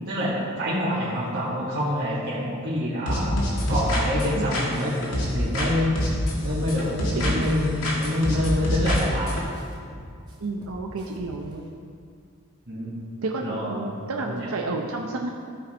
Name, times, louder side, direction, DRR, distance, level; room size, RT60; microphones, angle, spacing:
voice 1, 0.1-3.4 3.7-5.9 6.3-9.3 12.7-12.9 13.4-13.8 14.3-14.5, left 1 dB, 50° right, -12 dB, 2.1 m, -26 dB
sound 1, 3.1-5.7 6.0-7.6 7.8-9.4, left 1 dB, 80° left, 2.2 m, -26 dB
sound 2, 6.0-6.2 6.5-9.0 9.4-11.5, equal, 20° right, 1.6 m, -45 dB
voice 2, 7.1-7.5 10.4-11.7 13.2-15.3, right 3 dB, 85° right, 1 dB, 0.7 m, -31 dB
15.0 x 5.2 x 4.5 m, 2.3 s
head